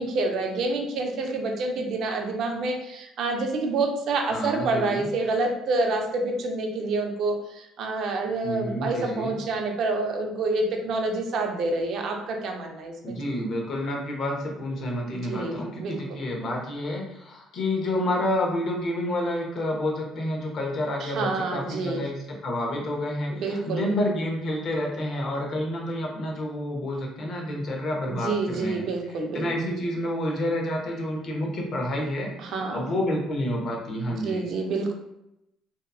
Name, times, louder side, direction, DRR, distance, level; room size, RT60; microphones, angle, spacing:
voice 1, 0.0-13.2 15.3-16.0 21.0-22.0 23.3-23.9 28.0-29.5 32.4-32.9 34.1-34.9, right 3 dB, 65° right, 3 dB, 0.5 m, -28 dB
voice 2, 4.3-5.0 8.4-9.3 13.0-34.5, left 1 dB, 55° left, 0 dB, 0.8 m, -29 dB
2.8 x 2.3 x 2.3 m, 0.84 s
supercardioid pair, 80°, 0 cm